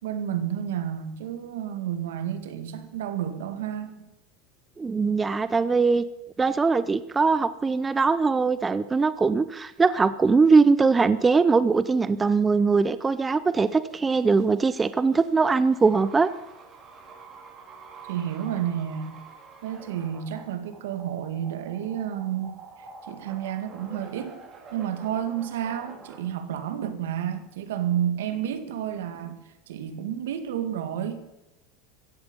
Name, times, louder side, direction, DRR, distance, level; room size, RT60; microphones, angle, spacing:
voice 1, 0.0-4.1 18.1-19.2 19.6-22.6 23.0-24.4 24.7-29.4 29.7-31.2, right 10 dB, 85° right, 2.1 m, -30 dB
voice 2, 4.8-6.0 6.4-16.3, right 4 dB, 15° right, 0.7 m, -21 dB
sound 1, 13.5-26.2, right 4 dB, 35° right, 4.6 m, -48 dB
16.0 x 15.0 x 5.5 m
supercardioid pair, 120°, 0 cm